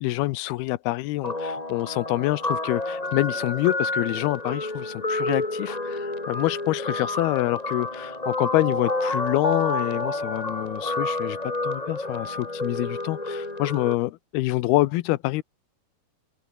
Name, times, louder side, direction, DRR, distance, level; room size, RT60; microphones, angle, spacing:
voice 1, 0.0-11.4 11.6-15.4, left 18 dB, 85° left, 2.7 m, -26 dB
Guitar, 1.2-13.9, left 2 dB, 10° left, 2.0 m, -29 dB
omnidirectional pair, 4.6 m